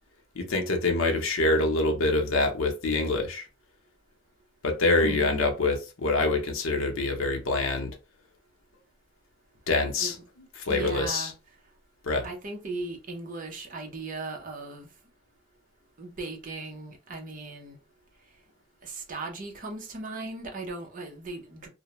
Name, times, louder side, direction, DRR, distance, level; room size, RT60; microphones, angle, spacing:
voice 1, 0.3-3.5 4.6-8.0 9.7-10.1 10.6-11.3 12.0-12.2, left 2 dB, 75° left, 0.7 m, -25 dB
voice 2, 10.7-11.3 12.2-14.9 16.0-17.8 18.8-21.7, right 3 dB, 40° right, 0.6 m, -37 dB
2.3 x 2.1 x 2.9 m
head